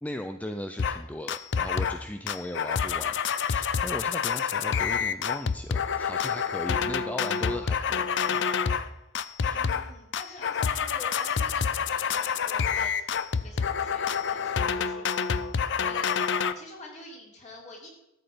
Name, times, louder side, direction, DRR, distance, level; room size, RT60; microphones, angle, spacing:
voice 1, 0.0-8.4 9.4-9.6, left 1 dB, 5° left, 7 dB, 0.4 m, -38 dB
sound 1, 0.8-1.0 1.3-2.0 2.3-8.9 9.2-9.9 10.1-16.5, left 6 dB, 60° left, 0.6 m, -27 dB
voice 2, 9.5-13.1 13.3-15.3 15.8-17.9, left 2 dB, 35° left, -1 dB, 3.4 m, -47 dB
13.0 x 8.0 x 5.1 m, 0.91 s
head